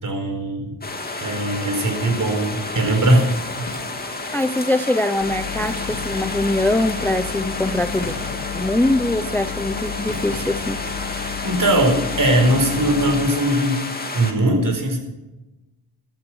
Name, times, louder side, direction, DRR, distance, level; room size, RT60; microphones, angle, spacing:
voice 1, 0.0-0.8 1.2-3.3 11.1-13.8 14.1-15.0, right 1 dB, 50° right, 4 dB, 4.6 m, -20 dB
sound 1, 0.8-14.3, left 2 dB, 20° left, 2.4 m, -31 dB
sound 2, 2.3-10.9, left 1 dB, 40° left, 6.1 m, -40 dB
voice 2, 4.3-8.1 8.5-10.8, left 1 dB, 5° left, 12 dB, 0.5 m, -22 dB
sound 3, 5.2-13.3, left 8 dB, 65° left, 2.3 m, -32 dB
15.5 x 13.0 x 6.2 m, 1.0 s
wide cardioid pair, 110°, 42 cm